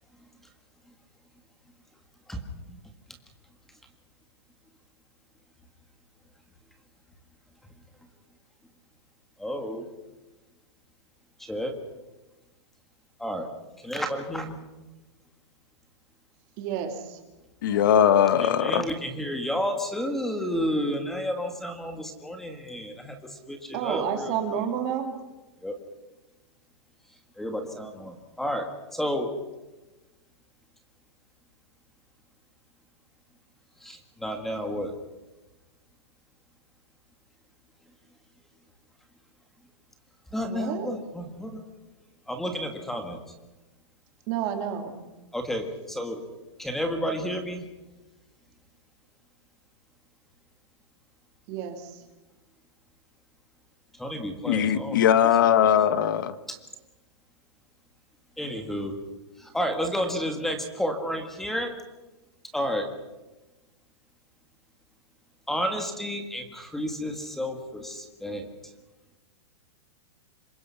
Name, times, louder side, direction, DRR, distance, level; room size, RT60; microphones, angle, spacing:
voice 1, 2.3-2.8 9.4-9.9 11.4-11.8 13.2-13.5 13.8-14.6 17.7-17.9 18.4-24.7 25.6-25.8 27.4-29.3 33.8-34.9 40.3-41.6 42.3-43.2 45.3-46.2 46.6-47.7 54.0-55.2 56.5-56.6 58.4-58.9 59.4-61.7 62.5-62.9 65.5-68.5, equal, ahead, 1.7 m, -31 dB
voice 2, 16.6-17.2 23.7-25.2 40.4-40.9 44.3-45.0 51.5-52.0, right 8 dB, 25° right, 2.6 m, -30 dB
voice 3, 17.6-18.8 54.5-56.3, left 9 dB, 45° left, 1.5 m, -20 dB
27.0 x 23.0 x 5.7 m
supercardioid pair, 180°, 15 cm